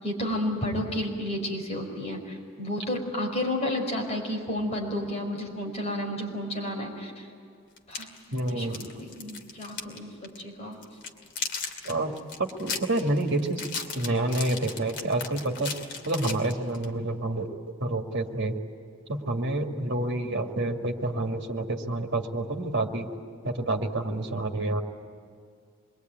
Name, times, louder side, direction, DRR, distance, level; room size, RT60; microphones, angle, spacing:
voice 1, 0.0-7.3 7.9-8.1 8.4-10.8, left 1 dB, 30° left, 0 dB, 5.3 m, -31 dB
sound 1, 7.8-10.0 10.2-10.4 10.8-16.9, left 5 dB, 55° left, 2.5 m, -36 dB
voice 2, 8.3-8.9 11.8-12.1 12.4-15.7 16.1-17.5 17.8-18.6 19.1-23.1 23.4-24.8, right 2 dB, 60° right, 2 dB, 2.3 m, -28 dB
27.0 x 22.0 x 9.5 m, 2.2 s
head